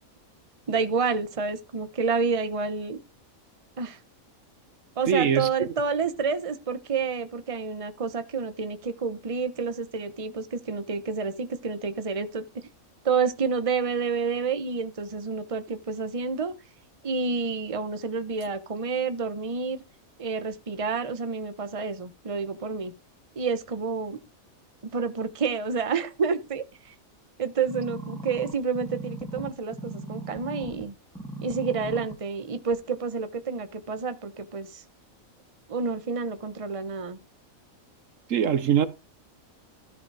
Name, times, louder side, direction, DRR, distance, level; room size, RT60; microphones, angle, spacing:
voice 1, 0.7-3.0 3.8-4.0 5.0-12.6 13.0-16.5 17.0-19.8 20.2-22.9 23.4-24.2 24.9-26.9 27.4-30.9 31.4-34.8 35.7-37.2, right 5 dB, 25° right, 1.0 m, -29 dB
voice 2, 5.1-5.7 38.3-38.9, right 8 dB, 65° right, 1.1 m, -23 dB
sound 1, 27.7-30.8 31.2-32.2 32.7-32.8, right 1 dB, 5° left, 1.9 m, -38 dB
13.5 x 5.1 x 4.8 m
omnidirectional pair, 1.5 m